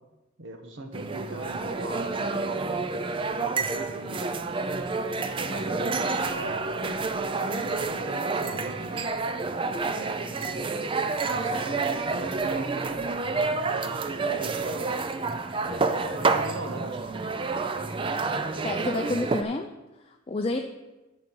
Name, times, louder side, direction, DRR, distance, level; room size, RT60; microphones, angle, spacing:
voice 1, 0.4-2.8 3.7-4.5 5.2-9.0 9.9-10.7 11.2-15.0 15.6-17.3, right 2 dB, 65° right, 5 dB, 1.2 m, -40 dB
sound 1, 0.9-19.4, right 3 dB, 25° right, 0.4 m, -29 dB
voice 2, 18.6-19.7 20.0-20.6, left 2 dB, 30° left, 4 dB, 0.5 m, -29 dB
10.5 x 5.5 x 5.5 m, 1.1 s
head